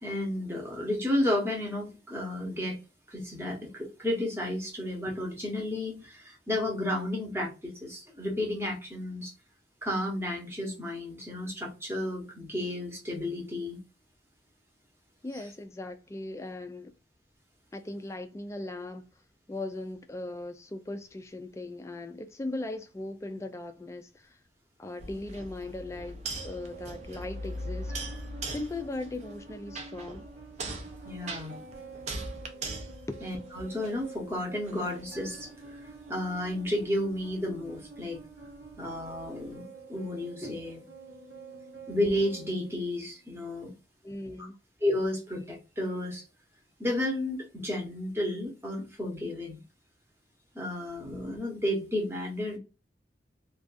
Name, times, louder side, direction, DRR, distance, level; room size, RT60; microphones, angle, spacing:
voice 1, 0.0-2.8 3.1-9.3 9.8-13.8 31.0-31.5 33.2-35.5 36.1-38.2 38.8-40.8 41.9-43.7 44.8-46.2 46.8-49.6 50.5-52.6, left 1 dB, 15° right, 0.9 m, -32 dB
voice 2, 15.2-16.9 17.7-19.1 19.5-24.4 24.8-28.0 28.4-30.3 33.1-33.2 44.0-44.5, left 2 dB, 15° left, 0.3 m, -38 dB
sound 1, 25.0-34.2 34.7-39.5, right 1 dB, 40° right, 0.5 m, -41 dB
sound 2, 26.4-43.4, right 3 dB, 85° right, 1.0 m, -48 dB
2.4 x 2.3 x 2.5 m
head